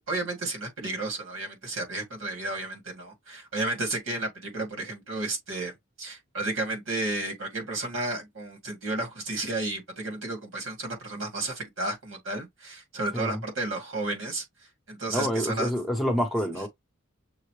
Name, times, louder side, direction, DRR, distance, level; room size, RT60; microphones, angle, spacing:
voice 1, 0.0-5.7 6.0-15.7, right 2 dB, 80° right, 2.0 m, -32 dB
voice 2, 15.1-16.7, equal, ahead, 0.8 m, -27 dB
6.5 x 2.2 x 3.1 m
head